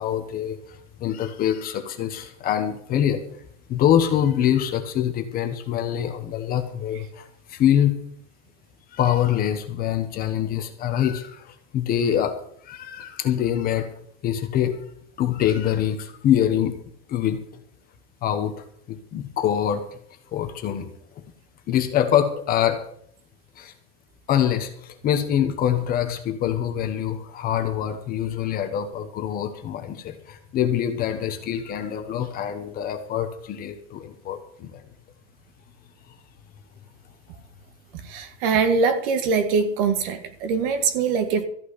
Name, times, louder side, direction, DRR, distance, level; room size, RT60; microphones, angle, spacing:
voice 1, 0.0-3.2 3.7-7.9 8.9-12.3 12.6-13.9 14.2-14.8 15.2-16.7 17.1-17.4 18.2-19.8 20.3-20.9 21.7-22.8 23.6-23.7 24.3-34.8, left 10 dB, 25° left, 7 dB, 1.2 m, -24 dB
voice 2, 38.1-41.4, right 5 dB, 55° right, 8 dB, 2.0 m, -22 dB
14.0 x 6.0 x 9.8 m, 0.65 s
supercardioid pair, 180°, 34 cm